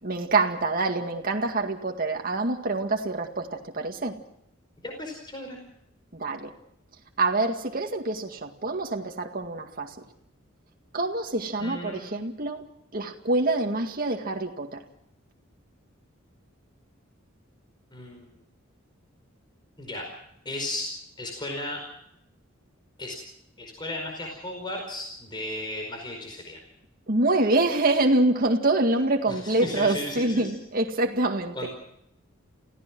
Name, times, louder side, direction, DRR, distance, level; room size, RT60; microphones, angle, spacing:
voice 1, 0.0-4.2 6.1-6.5 7.2-9.9 10.9-12.7 12.9-14.8 27.1-31.7, right 2 dB, 45° right, 2.0 m, -26 dB
voice 2, 4.8-5.6 11.6-12.0 17.9-18.3 19.8-20.0 20.4-20.9 21.2-21.8 23.0-23.2 23.6-26.6 29.3-30.5 31.5-31.7, left 1 dB, 25° left, 4.9 m, -35 dB
28.5 x 16.0 x 6.1 m
head